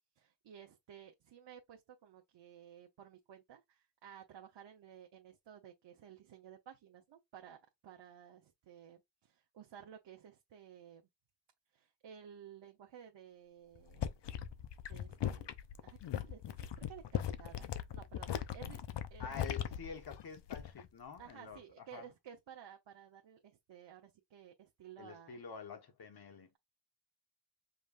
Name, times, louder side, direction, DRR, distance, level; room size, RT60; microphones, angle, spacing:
voice 1, 0.2-11.0 11.7-14.1 14.9-15.5 15.8-17.7 17.9-18.8 19.1-19.7 21.2-25.4, right 9 dB, 90° right, 0.9 m, -55 dB
sound 1, 13.8-20.9 21.2-21.6, left 10 dB, 75° left, 0.6 m, -40 dB
voice 2, 19.2-21.6 21.9-22.1 25.0-26.5, left 6 dB, 60° left, 1.3 m, -48 dB
5.2 x 3.2 x 2.4 m
wide cardioid pair, 125°, 43 cm